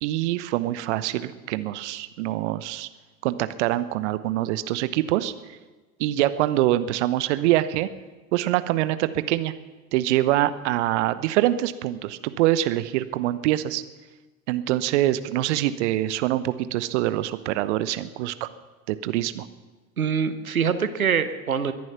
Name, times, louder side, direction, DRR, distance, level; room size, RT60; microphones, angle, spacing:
voice 1, 0.0-2.9 3.2-5.3 6.0-7.9 8.3-9.5 9.9-13.8 14.5-18.5 18.9-19.5, right 14 dB, 55° right, 14 dB, 1.0 m, -24 dB
voice 2, 20.0-21.7, right 7 dB, 85° right, 11 dB, 1.0 m, -24 dB
22.5 x 10.5 x 5.8 m, 1.2 s
figure-of-eight pair, 80°, 41 cm